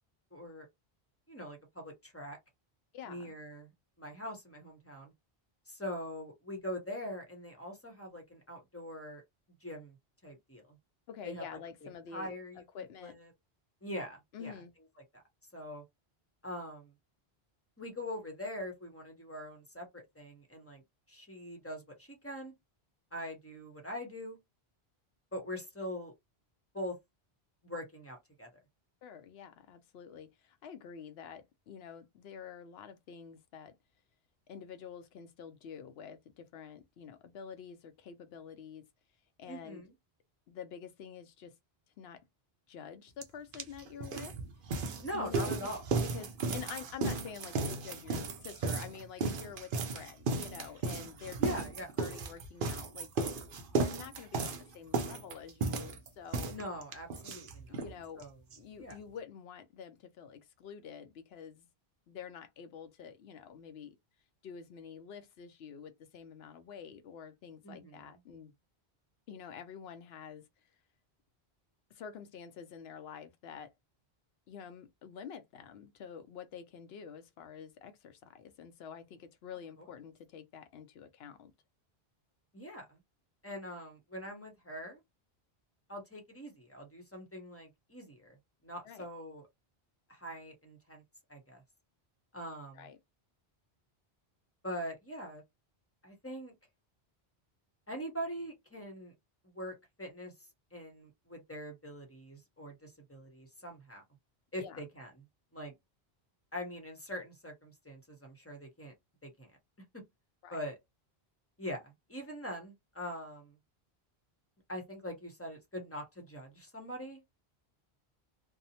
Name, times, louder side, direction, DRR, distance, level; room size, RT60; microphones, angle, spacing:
voice 1, 0.3-0.7 1.3-2.4 3.1-3.7 4.0-5.1 5.7-9.2 9.6-10.0 10.2-10.8 11.2-11.4 12.1-12.6 13.0-13.3 13.8-14.5 15.1-15.2 15.5-15.8 16.4-16.9 17.8-20.8 21.1-22.5 23.1-24.4 25.3-26.1 26.7-27.0 27.6-28.5 39.5-39.9 45.0-45.8 51.4-51.9 56.5-57.8 58.2-58.3 58.8-59.0 67.6-68.2 82.5-83.0 83.4-85.0 85.9-88.4 88.6-89.5 90.1-91.0 91.3-91.6 92.3-92.9 94.6-95.4 96.0-96.5 97.9-99.1 99.5-100.3 100.7-104.0 104.5-105.1 105.5-105.7 106.5-108.9 109.2-109.5 109.9-110.0 110.5-110.7 111.6-113.5 114.7-117.2, equal, 15° left, 0.7 m, -43 dB
voice 2, 2.9-3.3 11.1-12.3 12.7-13.2 14.3-14.7 29.0-33.7 34.5-38.8 39.4-39.8 40.5-41.5 42.0-42.2 42.7-44.3 45.1-45.7 46.0-51.6 52.0-53.4 53.7-56.5 57.7-58.2 58.6-61.7 62.1-64.0 64.4-68.5 69.3-70.5 71.9-73.7 74.5-81.5 88.8-89.1 92.7-93.0 104.6-104.8 110.4-110.6, left 7 dB, 75° left, 0.8 m, -48 dB
sound 1, 43.2-43.3 43.5-57.9 58.2-58.3 58.5-58.6 58.9-59.0, right 3 dB, 60° right, 0.8 m, -35 dB
2.7 x 2.0 x 2.7 m
omnidirectional pair, 1.1 m